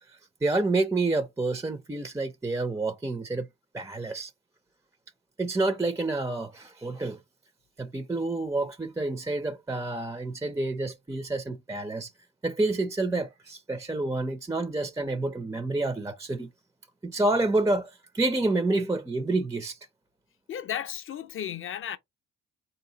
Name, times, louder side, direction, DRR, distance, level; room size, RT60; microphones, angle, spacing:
voice 1, 0.1-3.5 3.7-4.3 5.4-7.2 7.8-12.1 12.4-16.5 17.0-19.8, right 2 dB, 10° right, 0.4 m, -28 dB
voice 2, 20.5-22.0, left 9 dB, 45° left, 0.6 m, -34 dB
3.8 x 2.7 x 2.7 m
cardioid pair, 90°, 30 cm